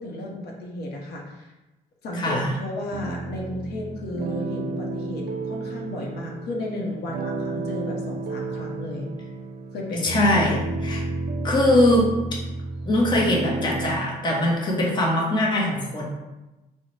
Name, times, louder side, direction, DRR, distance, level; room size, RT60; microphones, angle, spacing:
voice 1, 0.0-1.5 2.0-9.1 9.7-10.1, left 1 dB, 70° left, -1 dB, 0.7 m, -33 dB
voice 2, 2.1-2.5 9.9-11.0 11.4-12.1 12.9-16.1, left 1 dB, 25° left, -3 dB, 0.8 m, -21 dB
sound 1, 2.9-14.0, right 2 dB, 70° right, 0.5 m, -31 dB
3.8 x 2.0 x 3.1 m, 1.0 s
cardioid pair, 110°, 17 cm